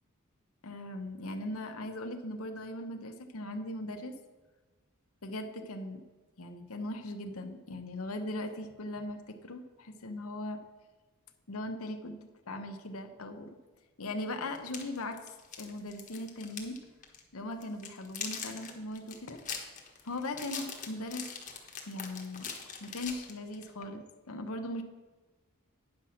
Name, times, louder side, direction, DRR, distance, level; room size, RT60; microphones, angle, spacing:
voice 1, 0.6-4.1 5.2-6.0 6.4-10.6 11.5-13.5 14.0-15.3 15.6-16.8 17.3-19.4 20.0-21.3 21.8-22.5 22.8-24.8, left 1 dB, 70° left, 5 dB, 0.9 m, -39 dB
sound 1, 14.6-16.8 17.0-17.2 17.6-23.7, left 6 dB, 35° left, 1.3 m, -42 dB
9.6 x 5.8 x 6.3 m, 1.2 s
head